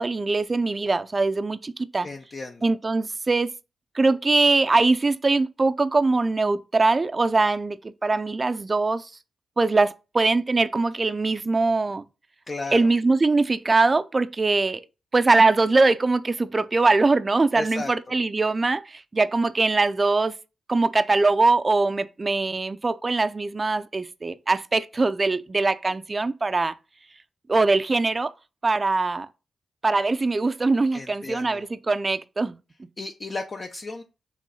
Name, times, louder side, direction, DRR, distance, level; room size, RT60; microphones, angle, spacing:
voice 1, 0.0-2.1 2.6-3.5 3.9-9.1 9.6-12.0 12.7-14.8 15.1-20.4 20.7-26.7 27.5-28.3 28.6-29.3 29.8-32.5, right 3 dB, 30° right, 0.5 m, -22 dB
voice 2, 2.0-2.7 12.5-12.9 17.5-18.2 30.9-31.7 33.0-34.0, left 3 dB, 40° left, 0.7 m, -34 dB
6.2 x 3.3 x 5.5 m
cardioid pair, 80°, 0 cm